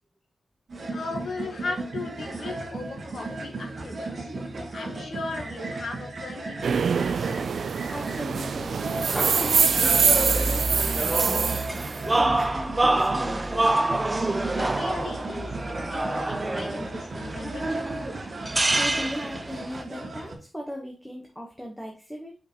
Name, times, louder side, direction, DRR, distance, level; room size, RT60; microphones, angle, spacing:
sound 1, 0.7-20.4, right 2 dB, 60° right, 2.0 m, -36 dB
voice 1, 0.9-4.3 4.7-7.4 14.5-17.9, left 3 dB, 85° left, 3 dB, 1.6 m, -38 dB
sound 2, 6.6-12.0, right 6 dB, 85° right, 0.3 m, -24 dB
voice 2, 7.5-8.9 9.1-11.8 12.1-13.9 18.7-22.4, equal, 5° left, 0 dB, 1.2 m, -38 dB
sound 3, 9.0-19.8, right 2 dB, 25° right, 0.6 m, -27 dB
5.9 x 5.6 x 3.0 m, 0.35 s
wide cardioid pair, 120°, 0 cm